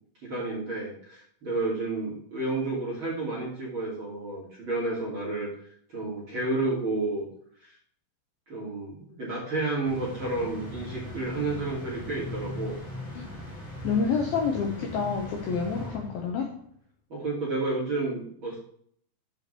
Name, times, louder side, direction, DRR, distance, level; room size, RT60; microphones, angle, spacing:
voice 1, 0.2-5.5 5.9-7.2 7.6-7.7 8.5-12.8 15.8-16.0 17.1-18.6, right 2 dB, 30° right, -5 dB, 2.8 m, -31 dB
sound 1, 9.8-16.5, left 1 dB, 15° left, 2.4 m, -39 dB
voice 2, 13.8-16.5, left 5 dB, 70° left, 1 dB, 2.4 m, -28 dB
8.0 x 5.7 x 6.6 m, 0.63 s
omnidirectional pair, 5.4 m